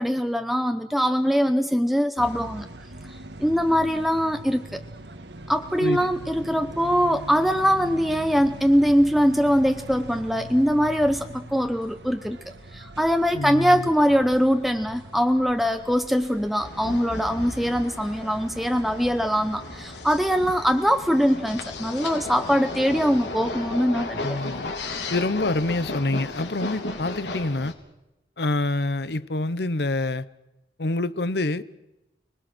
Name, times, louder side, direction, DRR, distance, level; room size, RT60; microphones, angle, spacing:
voice 1, 0.0-2.7 3.1-4.8 5.5-12.4 12.7-24.4, equal, ahead, 0.8 m, -22 dB
sound 1, 2.2-21.7, right 1 dB, 80° right, 1.6 m, -42 dB
voice 2, 13.3-13.9 24.2-24.7 25.1-27.7 28.4-30.2 30.8-31.6, left 2 dB, 70° left, 0.9 m, -26 dB
sound 2, 16.6-27.7, left 2 dB, 90° left, 3.5 m, -34 dB
30.0 x 21.0 x 6.2 m
head